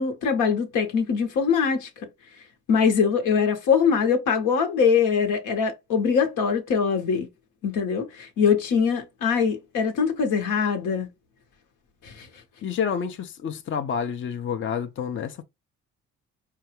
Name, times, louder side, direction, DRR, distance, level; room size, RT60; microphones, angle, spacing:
voice 1, 0.0-1.9 2.7-7.3 7.6-11.1 12.0-12.3, left 6 dB, 80° left, 1.1 m, -22 dB
voice 2, 12.6-15.4, left 7 dB, 40° left, 0.5 m, -29 dB
4.6 x 2.3 x 3.0 m
cardioid pair, 90°, 30 cm